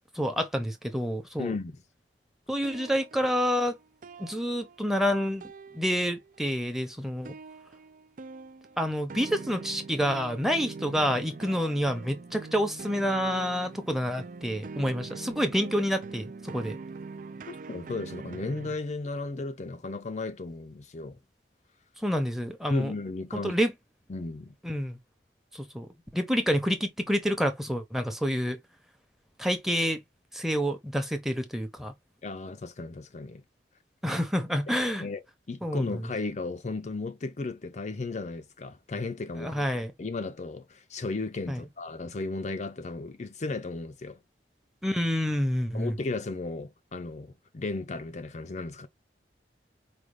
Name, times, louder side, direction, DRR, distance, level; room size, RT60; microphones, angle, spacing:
voice 1, 0.1-1.5 2.5-3.8 4.2-5.4 5.7-7.3 8.8-16.8 22.0-22.9 23.3-23.7 24.6-25.0 25.5-28.6 29.4-30.0 30.3-31.9 34.0-35.0 35.6-36.0 39.4-39.9 41.5-41.6 44.8-45.9, equal, ahead, 0.8 m, -28 dB
voice 2, 1.4-1.8 17.5-21.2 22.7-23.5 24.1-24.5 32.2-33.4 34.8-39.6 40.0-44.2 45.7-48.9, left 3 dB, 40° left, 0.5 m, -35 dB
sound 1, 2.5-5.1 5.4-6.4 7.3-18.8, right 4 dB, 50° right, 0.5 m, -43 dB
5.0 x 2.4 x 3.2 m
head